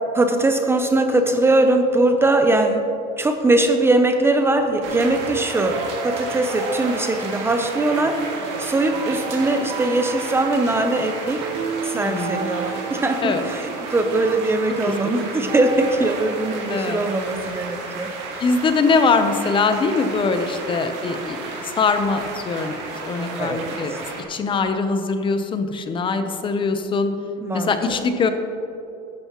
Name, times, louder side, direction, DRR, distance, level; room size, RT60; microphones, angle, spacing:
voice 1, 0.1-2.8 3.2-8.2 8.6-11.4 11.8-18.4 23.2-24.0 27.4-28.0, right 2 dB, 15° right, 6 dB, 0.6 m, -21 dB
sound 1, 4.2-16.5, right 6 dB, 30° right, 0.9 m, -34 dB
sound 2, 4.8-24.2, right 3 dB, 70° right, 2.3 m, -33 dB
voice 2, 11.9-12.5 13.2-13.4 16.7-17.0 18.4-22.8 23.0-23.9 24.3-27.1 27.5-28.3, left 4 dB, 25° left, 8 dB, 0.7 m, -22 dB
14.0 x 11.5 x 3.0 m, 2.8 s
cardioid pair, 145°, 19 cm